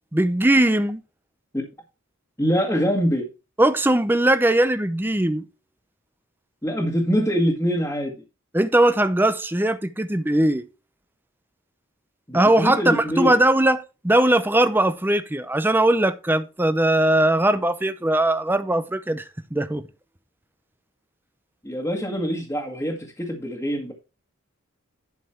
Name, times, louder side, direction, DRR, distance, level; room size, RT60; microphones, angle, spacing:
voice 1, 0.1-1.0 3.6-5.4 8.5-10.6 12.3-19.2 19.5-19.8, right 1 dB, 10° right, 0.6 m, -20 dB
voice 2, 2.4-3.3 6.6-8.1 12.3-13.4 21.6-23.9, equal, 10° left, 1.7 m, -24 dB
11.5 x 5.3 x 4.4 m
head